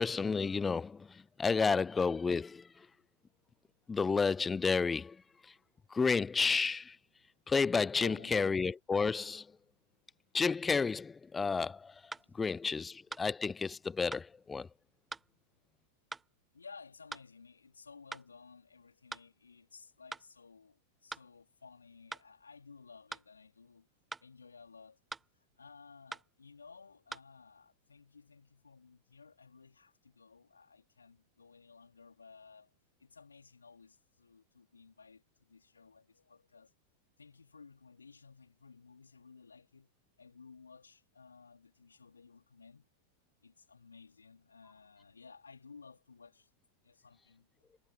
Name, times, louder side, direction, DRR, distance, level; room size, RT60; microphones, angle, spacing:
voice 1, 0.0-2.7 3.9-5.2 5.9-7.0 7.5-9.5 10.3-11.9 12.3-14.7, left 5 dB, 15° left, 0.4 m, -31 dB
voice 2, 8.0-8.6 12.1-12.5 15.2-15.3 16.5-23.9 24.2-25.0 25.4-32.7 33.0-36.7 37.2-42.9 43.4-46.5 46.8-47.5, left 5 dB, 75° left, 3.3 m, -56 dB
sound 1, 12.1-12.3 13.1-13.3 14.1-14.3 15.1-15.3 16.1-16.3 17.1-17.3 18.1-18.3 19.1-19.3 20.1-20.3 21.1-21.3 22.1-22.3 23.1-23.3 24.1-24.3 25.1-25.3 26.1-26.3 27.1-27.2, right 4 dB, 10° right, 1.2 m, -43 dB
figure-of-eight pair, 90°, 0 cm